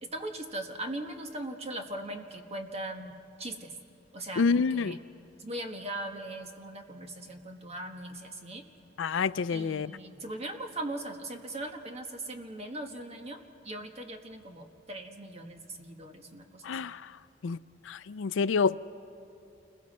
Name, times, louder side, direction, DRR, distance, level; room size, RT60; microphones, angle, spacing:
voice 1, 0.0-3.8 4.1-5.0 5.4-8.6 9.5-16.9, right 1 dB, 35° right, 1.5 m, -40 dB
voice 2, 4.4-5.0 9.0-9.9 16.6-17.0 17.4-17.6 17.9-18.7, left 5 dB, 75° left, 0.4 m, -27 dB
29.0 x 21.5 x 4.3 m
head